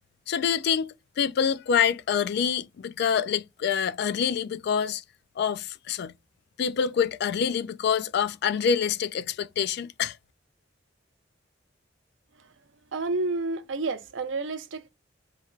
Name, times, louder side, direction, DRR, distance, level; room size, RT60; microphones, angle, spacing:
voice 1, 0.3-5.0 5.4-6.1 6.6-10.2, left 7 dB, 60° left, 0.3 m, -26 dB
voice 2, 12.9-14.9, right 3 dB, 85° right, 0.6 m, -30 dB
3.2 x 2.4 x 4.4 m
head